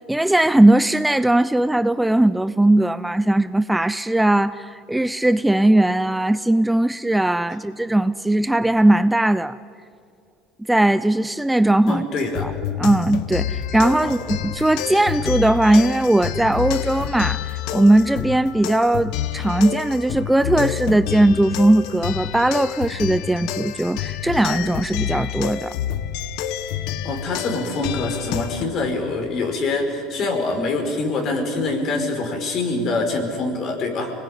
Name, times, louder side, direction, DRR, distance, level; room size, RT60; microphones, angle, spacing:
voice 1, 0.1-9.6 10.7-12.0 12.4-12.5 12.8-25.8, right 1 dB, 5° right, 0.5 m, -18 dB
voice 2, 11.9-12.5 14.0-14.2 27.0-34.1, left 3 dB, 50° left, 5.1 m, -25 dB
sound 1, 12.2-28.6, left 10 dB, 70° left, 1.1 m, -28 dB
25.5 x 20.0 x 9.7 m
supercardioid pair, 95°, 0 cm